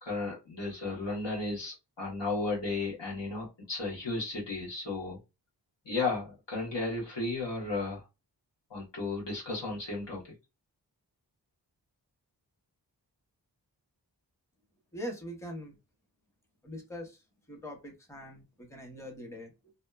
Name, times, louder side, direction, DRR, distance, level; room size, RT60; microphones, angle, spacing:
voice 1, 0.0-5.2 5.8-8.0 8.7-10.2, left 3 dB, 90° left, -4 dB, 1.3 m, -34 dB
voice 2, 14.9-15.7 16.6-17.2 17.5-19.7, equal, 5° left, 2 dB, 0.8 m, -42 dB
2.6 x 2.2 x 2.3 m, 0.25 s
wide cardioid pair, 60°, 42 cm